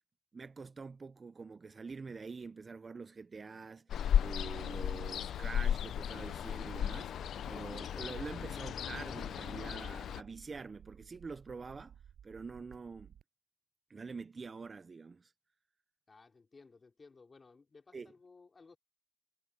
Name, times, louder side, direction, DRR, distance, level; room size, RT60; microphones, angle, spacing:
voice 1, 0.3-7.1 7.5-11.9 12.2-13.1 13.9-15.3 17.9-18.1, right 4 dB, 30° right, 0.4 m, -46 dB
Ocean, 3.9-10.2, left 9 dB, 90° left, 0.3 m, -35 dB
sound 1, 5.2-13.2, right 9 dB, 80° right, 6.1 m, -58 dB
voice 2, 16.1-18.8, left 4 dB, 30° left, 3.1 m, -59 dB
wide cardioid pair, 170°, 0 cm